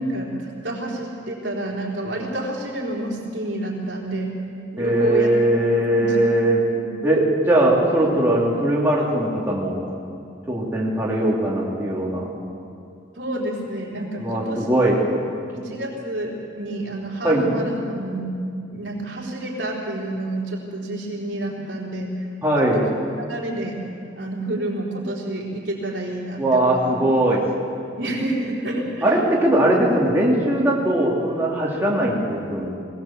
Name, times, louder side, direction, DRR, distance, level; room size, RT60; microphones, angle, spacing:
voice 1, 0.0-4.3 4.7-5.3 6.0-6.2 6.7-6.8 13.1-14.7 15.5-18.3 18.7-22.2 22.7-22.9 23.2-23.8 24.1-26.8 28.0-29.2 32.0-32.1, right 1 dB, 70° right, -3 dB, 4.2 m, -29 dB
voice 2, 4.8-6.6 7.0-9.7 10.5-12.2 14.2-15.0 17.2-17.4 22.4-22.8 26.4-27.4 29.0-32.7, right 1 dB, 10° right, -5 dB, 3.1 m, -20 dB
21.5 x 17.5 x 7.4 m, 2.5 s
head